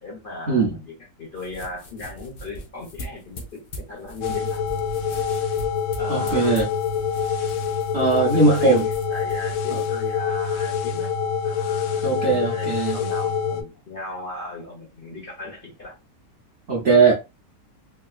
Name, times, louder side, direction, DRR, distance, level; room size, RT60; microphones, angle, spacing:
voice 1, 0.0-3.4 3.9-4.6 6.0-6.6 8.3-11.1 11.4-12.7 12.9-16.0, left 2 dB, 40° left, 0.9 m, -37 dB
sound 1, 1.3-10.9, equal, 60° left, 0.5 m, -42 dB
sound 2, 4.2-13.6, left 6 dB, 85° left, 1.3 m, -26 dB
voice 2, 6.1-6.7 7.9-8.9 9.7-9.8 12.0-13.0 16.7-17.1, right 4 dB, 50° right, 0.8 m, -19 dB
3.4 x 2.8 x 2.3 m
omnidirectional pair, 1.8 m